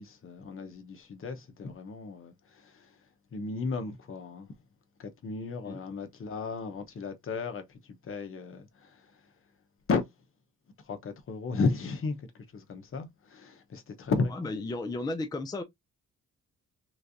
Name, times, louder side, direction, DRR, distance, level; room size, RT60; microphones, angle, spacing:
voice 1, 0.0-2.9 3.3-4.5 5.0-9.2 9.9-10.1 10.8-14.6, left 4 dB, 45° left, 0.9 m, -34 dB
voice 2, 14.3-15.6, left 2 dB, 15° left, 0.5 m, -34 dB
3.3 x 3.2 x 2.5 m
cardioid pair, 105°, 30 cm